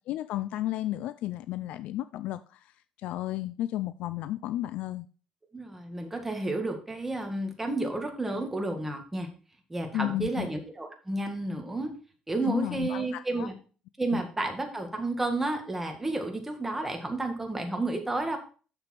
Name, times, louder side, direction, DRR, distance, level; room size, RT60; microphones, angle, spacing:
voice 1, 0.1-2.6 3.0-5.1 9.9-10.5 12.5-13.5 14.1-14.2, left 14 dB, 75° left, 0.4 m, -33 dB
voice 2, 5.5-9.3 9.7-11.9 12.3-13.5 14.0-18.4, right 2 dB, 10° right, 1.9 m, -31 dB
7.0 x 6.7 x 4.5 m
cardioid pair, 100°, 2 cm